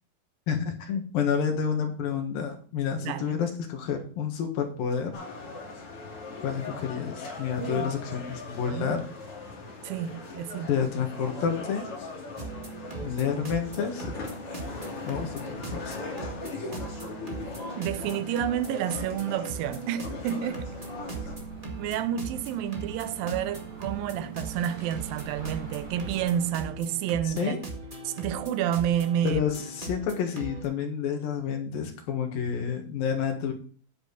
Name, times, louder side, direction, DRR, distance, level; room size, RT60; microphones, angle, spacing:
voice 1, 0.5-5.1 6.4-9.0 10.7-11.8 13.0-14.1 15.1-16.0 27.3-27.6 29.2-33.5, left 7 dB, 75° left, 3.3 m, -29 dB
voice 2, 3.1-3.4 7.6-7.9 8.7-9.0 9.8-10.7 17.8-20.7 21.8-27.6 28.0-29.4, right 10 dB, 80° right, 2.3 m, -30 dB
sound 1, 5.1-21.3, left 3 dB, 40° left, 3.1 m, -40 dB
sound 2, 12.4-30.6, right 3 dB, 25° right, 1.0 m, -39 dB
sound 3, 15.5-26.5, right 2 dB, 60° right, 6.9 m, -48 dB
9.3 x 8.5 x 4.1 m
omnidirectional pair, 4.2 m